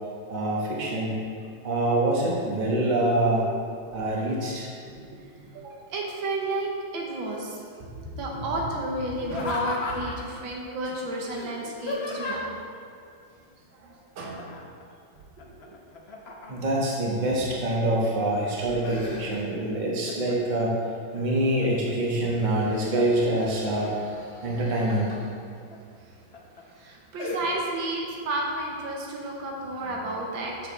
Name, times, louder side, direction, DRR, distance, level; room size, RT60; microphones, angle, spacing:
voice 1, 0.3-1.2 1.6-3.4 3.9-4.7 7.8-7.9 8.3-8.4 16.5-20.8 21.1-25.2, right 1 dB, 30° right, -4 dB, 1.1 m, -25 dB
voice 2, 4.9-7.6 8.2-12.5 12.7-12.9 14.2-14.5 15.5-15.7 26.8-30.7, right 1 dB, 75° right, -1 dB, 1.7 m, -32 dB
Laughter, 9.2-10.3 11.3-12.6 14.4-14.8 15.2-16.8 17.3-18.0 18.4-19.7 20.0-20.6 21.1-21.9 22.4-23.2 24.4-25.2 25.7-25.8 26.3-26.6 27.2-27.4, left 2 dB, 50° left, 0.8 m, -36 dB
7.4 x 5.8 x 4.2 m, 2.3 s
omnidirectional pair, 2.1 m